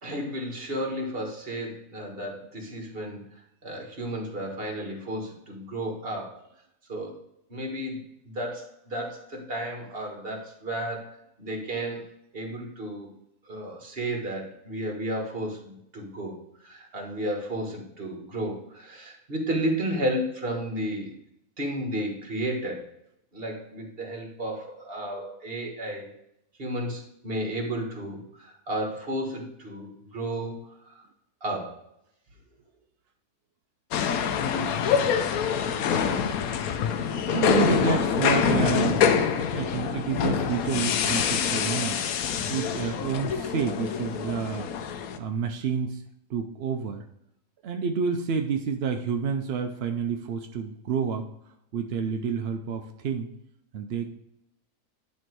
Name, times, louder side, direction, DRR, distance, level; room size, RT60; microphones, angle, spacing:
voice 1, 0.0-3.2 3.6-6.4 6.9-7.2 7.5-11.1 11.4-12.0 12.3-13.1 13.4-16.4 16.6-21.1 21.6-22.8 23.3-26.1 26.6-30.5 30.8-31.0 31.4-31.8 34.1-34.3, right 1 dB, 40° right, 1 dB, 1.6 m, -33 dB
sound 1, 33.9-45.2, left 7 dB, 75° left, 1.1 m, -25 dB
voice 2, 37.3-39.0 39.5-42.0 42.5-44.7 45.2-46.0 46.3-47.0 47.6-51.3 51.7-53.3 53.7-54.1, right 6 dB, 65° right, 5 dB, 0.6 m, -29 dB
10.5 x 3.5 x 4.6 m, 0.80 s
omnidirectional pair, 1.6 m